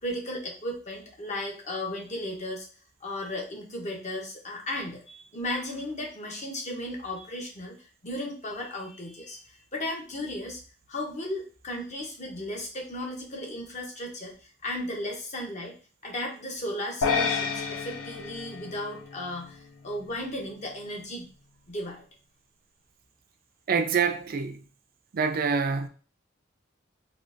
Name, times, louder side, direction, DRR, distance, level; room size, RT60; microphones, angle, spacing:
voice 1, 0.0-2.7 3.0-7.8 8.0-10.6 10.9-14.3 14.6-15.7 16.0-21.3 21.7-22.0, left 1 dB, 40° left, 0.8 m, -35 dB
sound 1, 17.0-19.5, left 5 dB, 70° left, 0.4 m, -30 dB
voice 2, 23.7-24.6 25.1-25.9, right 5 dB, 50° right, 0.4 m, -26 dB
3.7 x 2.3 x 2.4 m
head